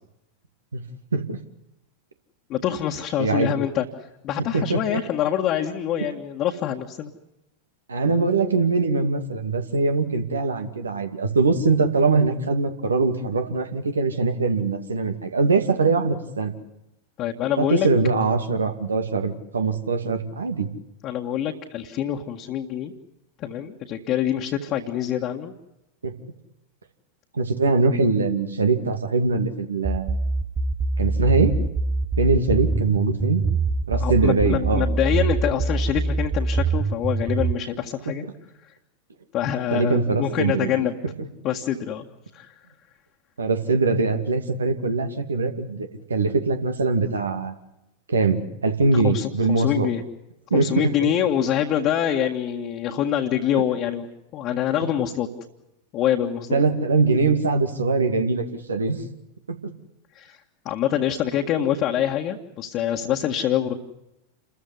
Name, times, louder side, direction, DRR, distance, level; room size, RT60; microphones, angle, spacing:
voice 1, 2.5-7.1 17.2-17.9 21.0-22.9 23.4-25.5 33.9-38.2 39.3-40.9 41.4-42.1 42.3-42.5 48.9-50.0 50.5-54.1 54.3-55.3 55.9-56.6 60.2-60.4 60.7-63.7, left 10 dB, 35° left, 0 dB, 1.9 m, -25 dB
voice 2, 3.2-3.6 4.5-5.0 7.9-16.5 17.6-20.7 26.0-26.1 27.3-30.2 31.0-31.6 32.2-33.4 33.9-34.9 38.1-38.2 39.7-40.7 41.0-41.3 43.4-47.5 48.1-49.9 50.5-51.1 54.8-54.9 56.5-59.0 59.5-59.7, right 3 dB, 75° right, 7 dB, 2.4 m, -22 dB
sound 1, 29.8-37.5, right 3 dB, 15° right, 1.1 m, -24 dB
29.0 x 14.5 x 9.6 m, 0.89 s
figure-of-eight pair, 90°, 0 cm